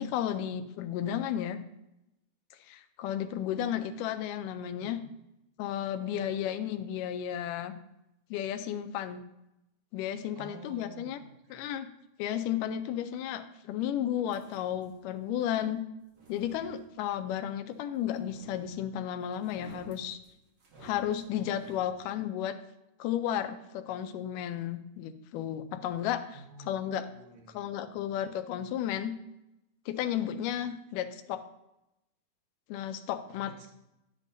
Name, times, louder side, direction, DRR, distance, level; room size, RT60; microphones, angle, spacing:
voice 1, 0.0-1.6 2.6-5.0 5.6-7.8 8.3-9.2 9.9-11.2 11.5-11.9 12.2-15.8 16.3-20.2 20.8-22.6 23.0-26.4 26.7-27.0 27.5-29.1 29.9-31.4 32.7-33.7, left 10 dB, 85° left, 9 dB, 2.2 m, -33 dB
voice 2, 4.8-5.1 10.3-11.6 26.3-27.7 33.4-33.7, right 1 dB, 85° right, -1 dB, 3.2 m, -51 dB
sound 1, 14.3-15.1 15.9-17.2 18.1-19.0 19.3-21.9, right 3 dB, 50° right, 1.4 m, -54 dB
10.5 x 8.2 x 2.6 m, 0.87 s
omnidirectional pair, 3.7 m